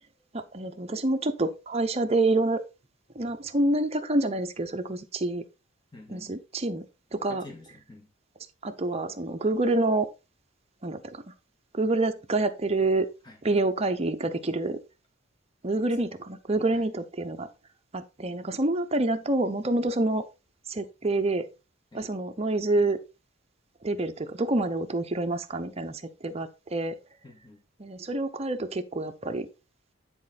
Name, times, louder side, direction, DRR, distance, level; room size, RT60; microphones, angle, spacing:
voice 1, 0.3-2.6 3.1-5.4 6.1-6.8 7.1-7.4 8.6-10.1 10.8-11.2 11.7-13.1 13.4-14.8 15.6-17.5 17.9-20.3 20.7-21.5 21.9-23.0 23.8-27.0 27.8-29.5, right 2 dB, 30° right, 0.8 m, -27 dB
voice 2, 5.9-6.3 7.3-8.1 13.2-13.4 16.7-16.8 21.9-22.1 27.2-27.6, left 2 dB, 20° left, 2.4 m, -48 dB
10.0 x 4.3 x 4.1 m
head